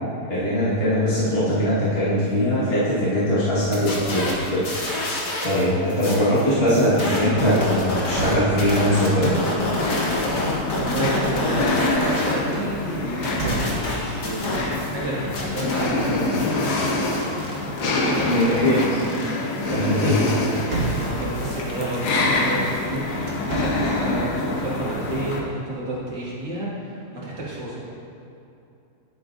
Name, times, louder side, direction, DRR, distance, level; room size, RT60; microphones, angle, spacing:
voice 1, 0.3-5.1 5.4-9.3 18.3-18.7 19.7-20.1, equal, 35° left, -11 dB, 1.8 m, -21 dB
sound 1, 3.6-5.6 5.9-12.3 12.7-15.0 15.3-22.8, left 1 dB, 55° left, 1.8 m, -29 dB
sound 2, 5.9-9.0 10.0-14.2 15.2-15.6 15.9-18.2 18.6-18.8 19.2-21.6 22.5-24.0, right 2 dB, 50° right, 1.7 m, -35 dB
sound 3, 9.6-25.4, left 2 dB, 75° left, 1.4 m, -26 dB
voice 2, 10.7-16.4 17.8-18.9 19.7-20.4 20.7-27.8, right 1 dB, 85° right, -7 dB, 2.7 m, -30 dB
11.0 x 8.1 x 2.7 m, 2.8 s
omnidirectional pair, 1.8 m